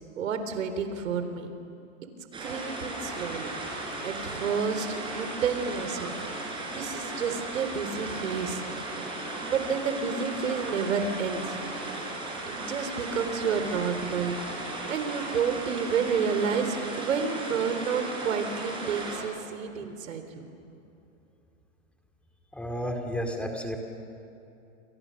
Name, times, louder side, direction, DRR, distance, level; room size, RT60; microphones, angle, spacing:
voice 1, 0.2-1.5 2.4-3.5 4.0-6.1 6.4-8.6 9.4-11.6 12.5-20.2, right 6 dB, 90° right, 8 dB, 3.9 m, -30 dB
sound 1, 2.3-19.2, right 2 dB, 10° right, 5.6 m, -36 dB
voice 2, 22.5-23.8, equal, 5° left, 2 dB, 2.4 m, -32 dB
29.0 x 28.0 x 6.6 m, 2.8 s
supercardioid pair, 155°, 39 cm